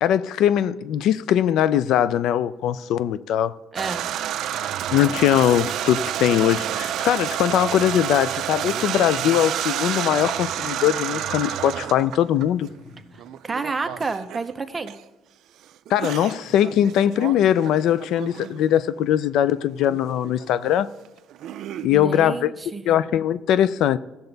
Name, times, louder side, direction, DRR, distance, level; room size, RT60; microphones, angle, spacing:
voice 1, 0.0-3.5 4.9-12.7 15.9-20.9 21.8-22.5 22.9-24.0, left 10 dB, 65° left, 0.3 m, -21 dB
voice 2, 3.7-4.0 13.4-14.9 21.9-23.0, right 4 dB, 20° right, 0.6 m, -29 dB
sound 1, 3.8-12.7 13.2-14.4 14.9-15.0 15.9-18.8 19.3-20.0 20.2-21.9, right 11 dB, 60° right, 0.4 m, -29 dB
sound 2, 6.4-6.9 7.6-8.0 8.7-9.1 9.9-10.5 11.2-12.0 12.5-13.2 13.6-14.0, left 2 dB, 85° left, 2.8 m, -47 dB
16.5 x 6.8 x 4.0 m
cardioid pair, 160°, 0 cm